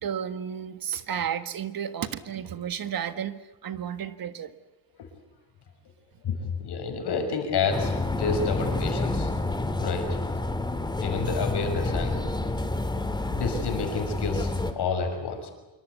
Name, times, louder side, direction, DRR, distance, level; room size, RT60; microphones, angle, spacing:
voice 1, 0.0-4.5, right 8 dB, 50° right, 11 dB, 1.6 m, -32 dB
voice 2, 6.2-9.3 9.8-10.1 11.0-12.1 13.3-15.5, left 5 dB, 60° left, 6 dB, 6.3 m, -29 dB
sound 1, 7.7-14.7, left 2 dB, 10° left, 2.1 m, -29 dB
26.5 x 24.5 x 8.2 m, 1.0 s
cardioid pair, 165°, 44 cm